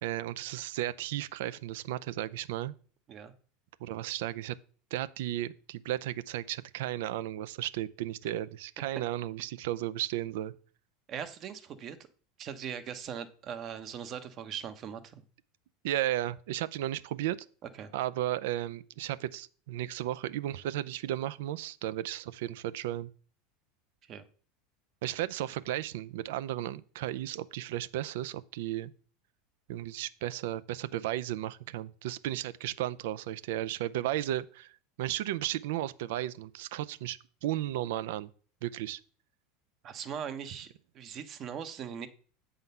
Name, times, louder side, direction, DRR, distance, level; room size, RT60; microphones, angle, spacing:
voice 1, 0.0-2.7 3.8-4.6 4.9-10.5 15.8-17.4 17.9-23.1 25.0-28.9 29.7-38.3 38.6-39.0, right 13 dB, 70° right, 0.4 m, -34 dB
voice 2, 11.1-12.0 12.4-15.2 17.7-17.9 24.1-24.2 39.8-42.1, right 8 dB, 45° right, 0.9 m, -40 dB
8.1 x 3.8 x 5.5 m
hypercardioid pair, 85°, 0 cm